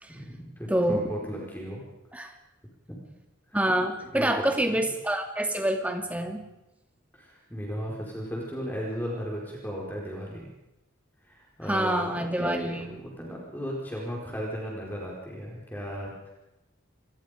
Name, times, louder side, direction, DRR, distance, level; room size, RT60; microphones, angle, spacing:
voice 1, 0.1-1.8 4.1-4.5 7.1-10.5 11.3-16.3, equal, 10° left, -3 dB, 4.7 m, -35 dB
voice 2, 0.7-1.0 2.1-2.3 3.5-6.4 11.7-13.0, right 1 dB, 5° right, 4 dB, 2.3 m, -27 dB
28.5 x 21.5 x 5.2 m, 0.93 s
head